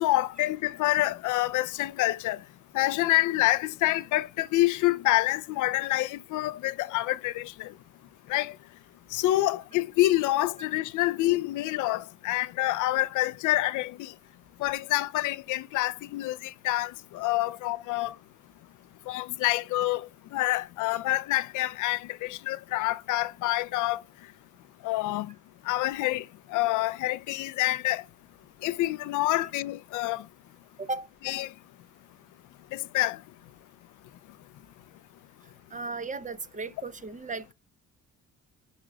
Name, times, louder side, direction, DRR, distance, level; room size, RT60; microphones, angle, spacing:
voice 1, 0.0-2.4 2.7-7.7 8.3-8.5 9.1-14.1 14.6-18.1 19.1-24.0 24.8-25.3 25.7-26.2 26.5-28.0 28.6-30.2 31.2-31.5 32.7-33.2, left 17 dB, 85° left, 0.5 m, -27 dB
voice 2, 35.7-37.5, right 3 dB, 25° right, 0.7 m, -35 dB
11.0 x 5.0 x 2.2 m
cardioid pair, 90°, 30 cm